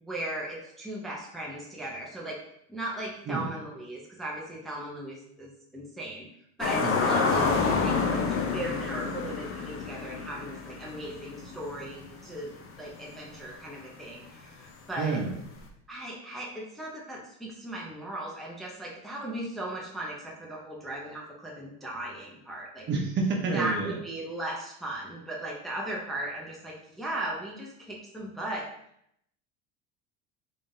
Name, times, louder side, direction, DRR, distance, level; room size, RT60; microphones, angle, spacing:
voice 1, 0.1-2.4 2.7-6.3 6.6-15.2 15.9-22.9 23.5-28.7, right 1 dB, ahead, -4 dB, 0.6 m, -37 dB
sound 1, 6.6-12.1 12.4-12.5 15.7-15.8, left 4 dB, 40° left, 0.6 m, -28 dB
voice 2, 15.0-15.3 22.9-24.0, right 4 dB, 35° right, 1 dB, 0.8 m, -29 dB
3.6 x 3.6 x 2.7 m, 0.73 s
supercardioid pair, 125°, 32 cm